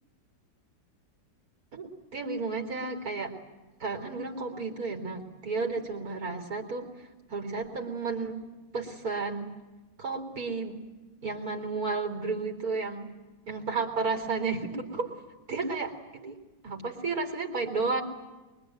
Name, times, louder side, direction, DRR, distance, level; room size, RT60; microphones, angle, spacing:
voice 1, 1.7-3.3 3.8-6.9 7.3-8.4 8.7-9.5 10.0-10.8 11.2-13.1 13.5-15.1 15.5-16.4 16.6-18.0, right 4 dB, 55° right, 3 dB, 4.3 m, -32 dB
24.5 x 23.5 x 9.3 m, 1.2 s
omnidirectional pair, 1.9 m